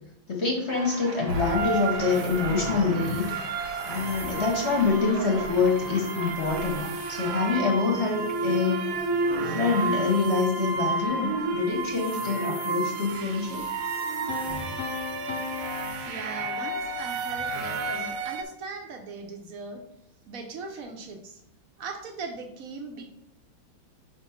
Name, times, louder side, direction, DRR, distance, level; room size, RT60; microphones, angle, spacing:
voice 1, 0.3-3.3 3.8-8.8 9.4-13.6, left 4 dB, 40° left, -1 dB, 1.1 m, -26 dB
sound 1, 0.7-7.9, right 3 dB, 25° right, 0.9 m, -41 dB
sound 2, 1.3-18.4, right 3 dB, 85° right, 1.5 m, -31 dB
sound 3, 14.3-17.2, left 7 dB, 75° left, 0.6 m, -37 dB
voice 2, 16.1-19.9 20.3-21.4 21.8-23.1, right 4 dB, 65° right, 5 dB, 0.8 m, -39 dB
5.1 x 3.5 x 5.7 m, 0.76 s
omnidirectional pair, 2.1 m